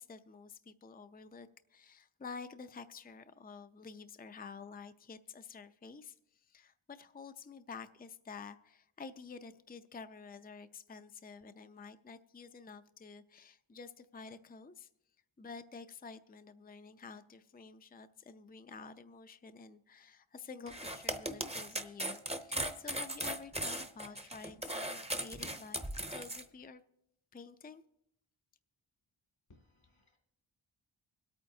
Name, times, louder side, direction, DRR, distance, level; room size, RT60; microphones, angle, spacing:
voice 1, 0.0-14.9 15.4-25.8 26.1-26.8 27.3-27.8, left 5 dB, 20° left, 10 dB, 0.4 m, -50 dB
sound 1, 20.7-26.4, right 1 dB, 15° right, 0.7 m, -38 dB
voice 2, 29.5-30.2, left 2 dB, 80° left, 2 dB, 2.3 m, -65 dB
25.0 x 8.8 x 2.7 m, 0.79 s
wide cardioid pair, 45°, 48 cm